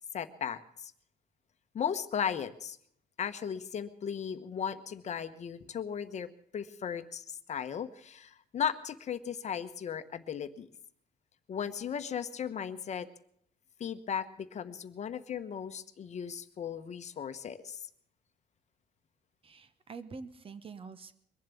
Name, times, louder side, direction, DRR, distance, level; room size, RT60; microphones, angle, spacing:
voice 1, 0.1-0.9 1.7-2.8 3.2-10.7 11.5-13.1 13.8-17.8, left 8 dB, 45° left, 10 dB, 1.1 m, -36 dB
voice 2, 19.4-21.1, right 4 dB, 35° right, 13 dB, 1.2 m, -46 dB
22.5 x 7.5 x 8.3 m, 0.67 s
cardioid pair, 110°, 17 cm